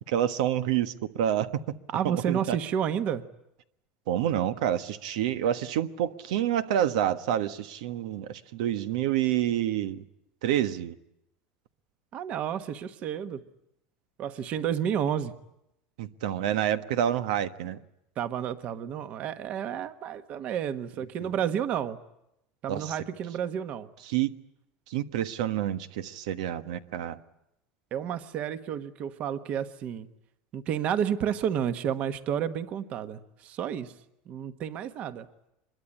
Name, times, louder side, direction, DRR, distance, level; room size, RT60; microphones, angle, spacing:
voice 1, 0.1-1.6 2.0-2.6 4.1-10.0 10.4-10.9 16.0-17.8 21.2-21.3 22.7-22.9 24.1-24.3 24.9-27.2, right 11 dB, 85° right, 1.3 m, -28 dB
voice 2, 1.9-3.2 12.1-13.4 14.2-15.3 18.2-22.0 22.6-23.9 27.9-30.1 30.5-33.9 34.3-35.3, right 9 dB, 35° right, 1.3 m, -31 dB
25.0 x 22.5 x 9.9 m
cardioid pair, 165°, 4 cm